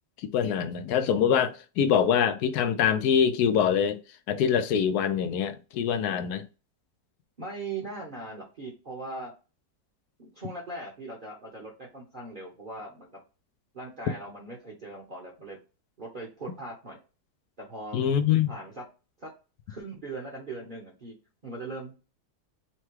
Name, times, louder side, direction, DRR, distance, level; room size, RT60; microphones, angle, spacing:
voice 1, 0.3-4.0 4.3-6.5 17.9-18.5, left 8 dB, 70° left, 1.1 m, -24 dB
voice 2, 7.4-9.3 10.2-13.1 13.7-15.6 16.0-17.0 17.6-18.0 18.5-18.8 19.2-19.3 19.7-21.2 21.4-22.0, right 2 dB, 35° right, 1.0 m, -40 dB
5.8 x 2.2 x 3.1 m
omnidirectional pair, 1.8 m